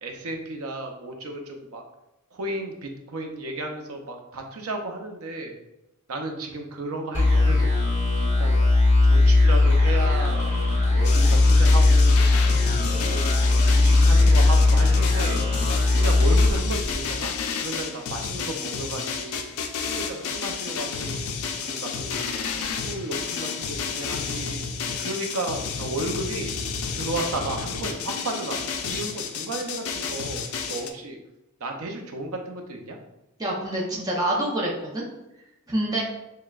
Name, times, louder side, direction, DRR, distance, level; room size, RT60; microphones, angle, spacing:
voice 1, 0.0-1.8 2.3-5.5 6.1-7.8 8.2-8.6 9.0-10.5 10.9-12.3 12.8-13.2 13.7-15.4 15.9-19.5 19.8-21.3 21.6-22.1 22.6-24.6 25.0-26.5 26.9-31.2 31.6-33.0, right 2 dB, 70° right, 3 dB, 0.6 m, -33 dB
sound 1, 7.1-17.4, left 2 dB, 30° left, 1.2 m, -19 dB
sound 2, 11.0-30.9, left 5 dB, 70° left, 0.4 m, -31 dB
voice 2, 33.4-35.0 35.7-36.0, right 1 dB, 15° right, -4 dB, 0.6 m, -26 dB
6.4 x 2.2 x 2.4 m, 0.92 s
head